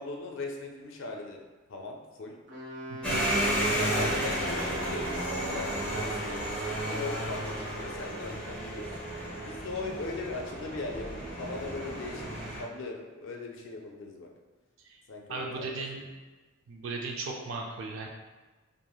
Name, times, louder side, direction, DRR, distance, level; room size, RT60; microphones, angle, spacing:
voice 1, 0.0-1.4 1.7-2.3 3.7-8.9 9.4-11.0 11.4-12.3 12.6-12.9 13.2-14.3 15.1-15.7, left 3 dB, 70° left, 1 dB, 0.4 m, -39 dB
Wind instrument woodwind instrument, 2.5-6.2, right 1 dB, 40° right, 0.8 m, -41 dB
voice 2, 2.9-3.4 14.8-15.0 15.3-16.1 16.7-18.1, right 3 dB, 75° right, 0 dB, 0.4 m, -37 dB
sound 1, 3.0-12.6, right 1 dB, 5° left, 0.6 m, -32 dB
3.0 x 2.5 x 2.3 m, 1.3 s
head